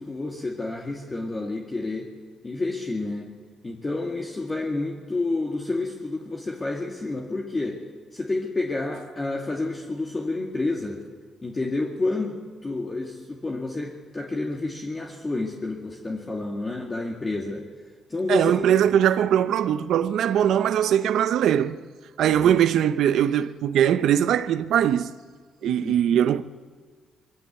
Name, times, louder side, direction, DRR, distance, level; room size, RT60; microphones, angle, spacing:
voice 1, 0.0-2.1 2.4-3.3 3.6-7.8 8.1-11.0 11.4-12.4 12.6-17.6 18.1-18.7 22.2-22.6 25.6-26.2, left 2 dB, 25° left, 2.2 m, -29 dB
voice 2, 18.3-21.8 22.2-25.1 25.6-26.4, right 10 dB, 75° right, 0.7 m, -21 dB
22.0 x 15.0 x 8.3 m
cardioid pair, 90°, 0 cm